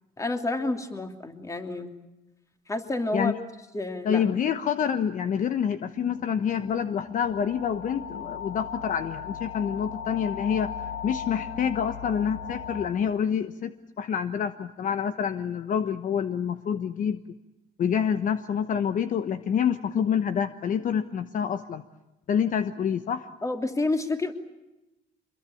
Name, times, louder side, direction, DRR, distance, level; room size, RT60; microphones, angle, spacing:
voice 1, 0.2-1.9 2.7-3.3 3.7-4.2 23.4-24.3, left 2 dB, 20° left, 5 dB, 2.9 m, -29 dB
voice 2, 4.0-10.7 11.0-13.7 14.0-17.2 17.8-21.8 22.3-23.3, left 8 dB, 50° left, 10 dB, 1.1 m, -27 dB
sound 1, 6.1-12.9, left 8 dB, 70° left, 5.9 m, -38 dB
25.5 x 22.0 x 8.6 m, 1.0 s
cardioid pair, 110°, 17 cm